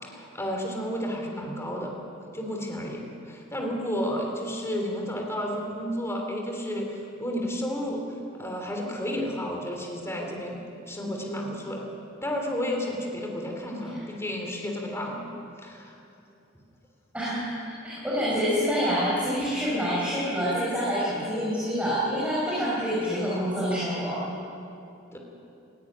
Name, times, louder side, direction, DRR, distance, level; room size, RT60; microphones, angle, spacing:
voice 1, 0.0-1.9 2.3-8.1 8.3-10.6 10.9-11.9 12.2-15.2 15.6-16.0 25.1-25.2, equal, 15° left, 1 dB, 3.2 m, -32 dB
voice 2, 17.1-17.5 17.8-24.2, equal, 5° right, -8 dB, 5.5 m, -27 dB
18.5 x 17.0 x 9.9 m, 2.7 s
head